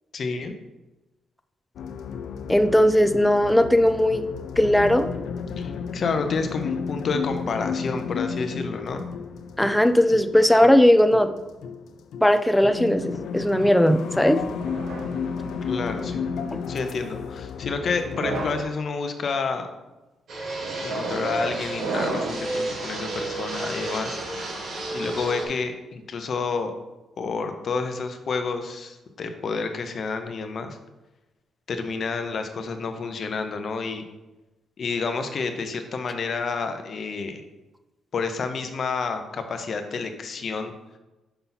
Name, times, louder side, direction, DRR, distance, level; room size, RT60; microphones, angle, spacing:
voice 1, 0.1-0.5 5.6-9.0 15.7-16.2 16.7-19.7 20.8-24.6 24.9-26.7 27.2-30.8 31.7-34.0 34.8-37.4 38.1-40.7, left 4 dB, 45° left, 7 dB, 0.7 m, -29 dB
sound 1, 1.8-18.6, left 6 dB, 70° left, 0.4 m, -33 dB
voice 2, 2.5-4.2 4.6-5.1 9.6-11.3 12.2-14.4, left 1 dB, 5° left, 7 dB, 0.3 m, -18 dB
sound 2, 14.6-16.0 16.8-17.2 18.0-18.7 19.3-19.7 20.6-22.5, right 3 dB, 85° right, 1.2 m, -33 dB
Fixed-wing aircraft airplane, 20.3-25.5, right 2 dB, 60° right, 1.6 m, -32 dB
5.6 x 5.6 x 4.0 m, 1.1 s
cardioid pair, 135°, 0 cm